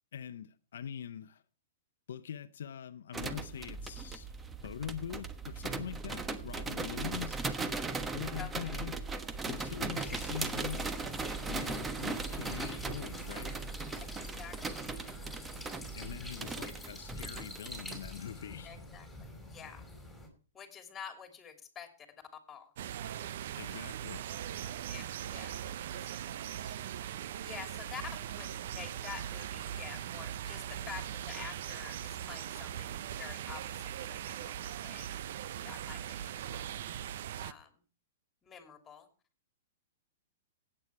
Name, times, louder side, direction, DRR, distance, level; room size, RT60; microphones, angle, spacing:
voice 1, 0.1-1.4 2.1-4.3 4.6-7.4 8.1-9.0 9.5-10.9 11.5-13.6 16.0-18.8 23.5-24.2, left 8 dB, 70° left, 0.7 m, -43 dB
sound 1, 3.1-18.1, right 4 dB, 15° right, 1.2 m, -38 dB
voice 2, 8.4-8.8 9.9-10.1 14.4-15.4 18.6-19.1 19.5-19.8 20.5-21.9 22.5-22.7 24.6-26.0 26.5-26.7 27.4-28.0 28.4-35.1 35.6-36.8 37.4-37.7 38.4-39.1, left 7 dB, 20° left, 3.0 m, -49 dB
sound 2, 9.9-20.3, left 1 dB, ahead, 5.0 m, -47 dB
sound 3, 22.8-37.5, right 10 dB, 60° right, 0.7 m, -40 dB
17.0 x 8.9 x 4.7 m
hypercardioid pair, 120°, 0 cm